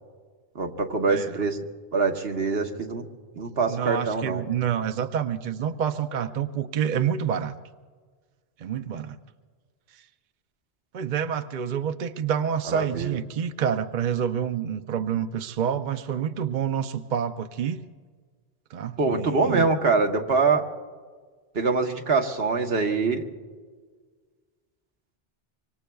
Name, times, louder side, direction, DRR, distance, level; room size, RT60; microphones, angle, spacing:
voice 1, 0.5-1.6 1.9-3.0 3.4-4.4 12.7-13.2 19.0-20.6 21.5-23.2, right 4 dB, 80° right, 4 dB, 1.4 m, -24 dB
voice 2, 1.1-1.4 3.7-7.6 8.6-9.2 10.9-17.8 18.7-19.6, right 8 dB, 55° right, 8 dB, 0.7 m, -28 dB
25.0 x 25.0 x 2.3 m, 1.5 s
omnidirectional pair, 1.0 m